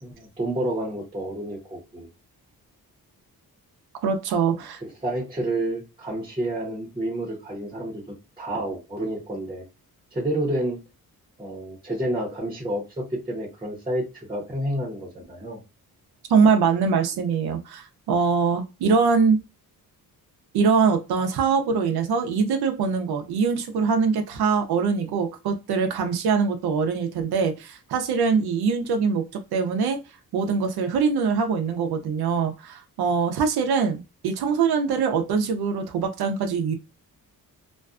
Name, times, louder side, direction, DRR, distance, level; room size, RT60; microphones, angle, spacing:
voice 1, 0.0-2.1 4.8-8.0 8.4-9.6 10.1-10.8 11.4-15.6, right 1 dB, 15° right, 0.8 m, -29 dB
voice 2, 4.0-4.8 16.3-19.4 20.5-29.2 29.5-30.0 30.3-36.7, right 5 dB, 90° right, 0.6 m, -23 dB
2.4 x 2.2 x 2.4 m
cardioid pair, 110°, 37 cm